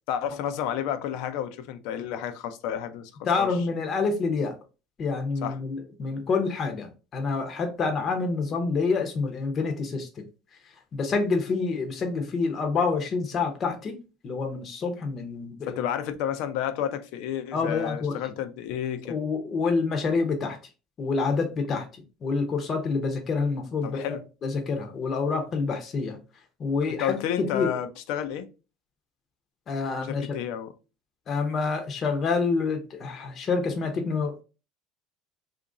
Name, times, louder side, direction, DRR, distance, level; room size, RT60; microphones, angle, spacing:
voice 1, 0.1-3.1 3.4-3.7 5.4-5.6 15.6-19.2 23.8-24.3 26.9-28.5 30.0-30.7, left 10 dB, 70° left, 0.5 m, -31 dB
voice 2, 3.3-4.5 5.0-10.1 10.9-14.0 14.2-15.8 17.5-18.2 19.1-20.6 21.0-21.9 22.2-26.2 26.6-27.7 29.7-30.3 31.3-34.4, left 4 dB, 35° left, 0.7 m, -27 dB
2.8 x 2.6 x 3.7 m
supercardioid pair, 120°, 0 cm